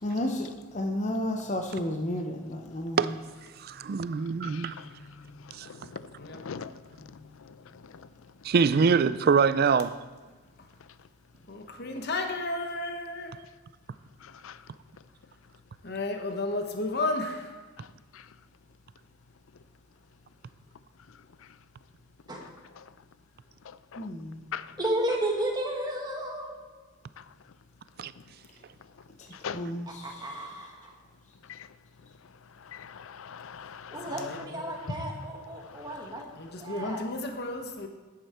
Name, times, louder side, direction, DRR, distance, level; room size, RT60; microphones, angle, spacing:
voice 1, 0.0-3.2 4.2-5.9 7.2-7.3 24.0-24.4 29.2-30.5, left 1 dB, 35° left, 0.7 m, -34 dB
voice 2, 3.6-4.8 5.5-5.7 8.4-10.0 28.0-28.1, right 5 dB, 45° right, 0.4 m, -24 dB
voice 3, 4.4-4.8 5.7-6.7 7.5-7.6 14.4-14.6 17.8-17.9 23.9-24.1 24.5-24.7 29.4-29.6 31.5-31.7 32.7-34.9 35.9-36.1 36.9-37.0, left 7 dB, 70° left, 0.4 m, -41 dB
voice 4, 11.5-13.3 15.8-17.5 34.1-34.6 34.9-35.0 36.4-37.9, left 2 dB, 50° left, 1.0 m, -33 dB
voice 5, 24.8-26.5 30.0-30.9 33.9-36.3 36.6-37.0, right 1 dB, 20° right, 1.6 m, -33 dB
10.5 x 8.8 x 4.3 m
head